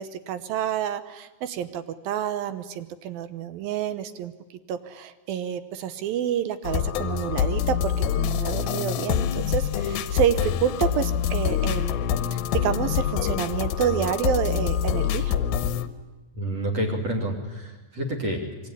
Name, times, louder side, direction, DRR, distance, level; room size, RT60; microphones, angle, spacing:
voice 1, 0.0-4.3 4.7-11.9 12.3-15.4, right 9 dB, 70° right, 12 dB, 2.4 m, -28 dB
sound 1, 6.6-15.9, left 9 dB, 70° left, 2.6 m, -26 dB
voice 2, 16.3-18.7, right 1 dB, 40° right, 5 dB, 3.7 m, -29 dB
24.5 x 24.0 x 10.0 m, 1.2 s
omnidirectional pair, 5.0 m